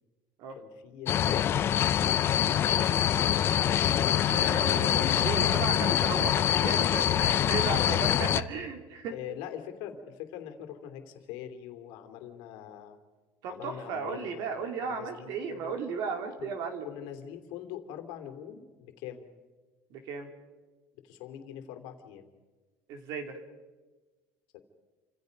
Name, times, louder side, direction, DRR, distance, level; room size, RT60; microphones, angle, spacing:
voice 1, 0.6-1.6 5.4-5.7 7.8-8.1 9.1-13.0 13.5-14.5 14.9-15.7 16.4-16.5 16.8-19.3 20.9-22.3 24.5-24.6, left 10 dB, 70° left, 6 dB, 3.0 m, -43 dB
sound 1, 1.1-8.4, left 10 dB, 30° left, 0.7 m, -25 dB
voice 2, 4.3-9.2 13.4-16.9 19.9-20.3 22.9-23.4, right 5 dB, 55° right, 6 dB, 3.0 m, -35 dB
28.5 x 26.0 x 5.4 m, 1.3 s
cardioid pair, 175°, 8 cm